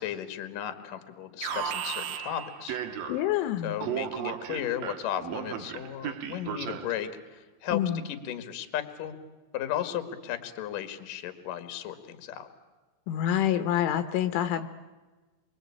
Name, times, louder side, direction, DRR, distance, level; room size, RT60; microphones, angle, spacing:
voice 1, 0.0-2.8 3.6-9.2 9.5-12.5, left 10 dB, 55° left, 9 dB, 2.8 m, -35 dB
Alarm, 1.4-3.4 3.8-7.1, right 9 dB, 65° right, 2.4 m, -35 dB
voice 2, 3.1-3.8 7.7-8.0 13.1-14.7, left 11 dB, 75° left, 10 dB, 3.4 m, -27 dB
28.0 x 23.5 x 8.7 m, 1.2 s
omnidirectional pair, 5.8 m